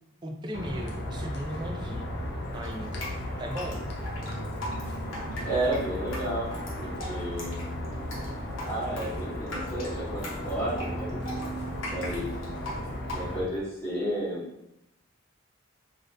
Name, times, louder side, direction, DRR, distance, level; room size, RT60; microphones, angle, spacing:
voice 1, 0.2-2.1 2.5-3.1 3.4-3.8, equal, 20° right, 2 dB, 0.3 m, -37 dB
sound 1, 0.5-13.4, equal, 50° left, 0.6 m, -35 dB
Drip, 2.6-13.6, left 1 dB, 70° left, 0.9 m, -40 dB
voice 2, 5.4-6.5 6.8-7.5 8.6-11.2 11.9-12.3 13.1-14.5, right 1 dB, 10° left, -12 dB, 1.4 m, -32 dB
3.4 x 2.6 x 2.5 m, 0.84 s
head